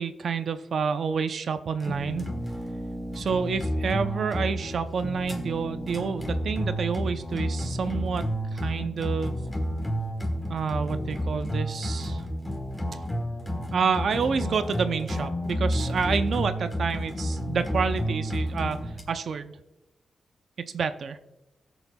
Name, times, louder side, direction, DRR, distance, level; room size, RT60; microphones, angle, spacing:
voice 1, 0.0-2.3 3.1-9.4 10.5-12.2 13.7-19.6 20.7-21.2, right 6 dB, 65° right, 10 dB, 0.5 m, -29 dB
sound 1, 1.8-19.0, equal, 5° left, 1.3 m, -30 dB
20.5 x 7.0 x 2.3 m, 0.96 s
wide cardioid pair, 135°, 0 cm